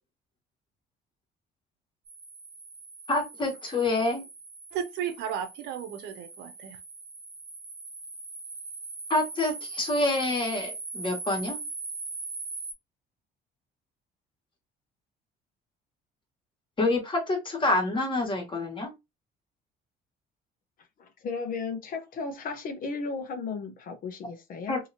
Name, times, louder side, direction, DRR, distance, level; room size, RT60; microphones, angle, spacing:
sound 1, 2.1-12.7, right 3 dB, 45° right, 1.2 m, -41 dB
voice 1, 3.1-4.2 9.1-11.6 16.8-18.9 24.7-24.8, left 2 dB, 30° left, 1.6 m, -27 dB
voice 2, 4.7-6.8, right 8 dB, 85° right, 0.7 m, -34 dB
voice 3, 21.0-24.8, left 4 dB, 55° left, 0.8 m, -35 dB
2.8 x 2.8 x 2.8 m
cardioid pair, 110°, 17 cm